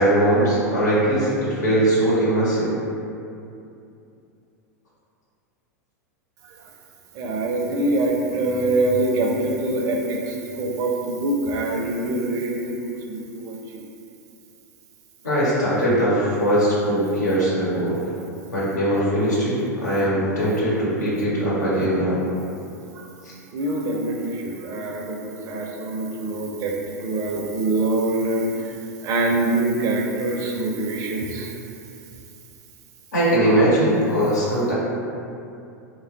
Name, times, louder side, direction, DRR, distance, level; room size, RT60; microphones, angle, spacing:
voice 1, 0.0-2.7 15.2-18.0 18.5-22.2 23.2-23.3 33.1-34.7, right 1 dB, 85° left, -8 dB, 1.0 m, -20 dB
voice 2, 7.1-13.8 19.9-20.0 23.5-28.5 29.0-31.5, right 2 dB, 40° right, 0 dB, 0.4 m, -24 dB
3.1 x 2.2 x 2.5 m, 2.6 s
hypercardioid pair, 95°, 9 cm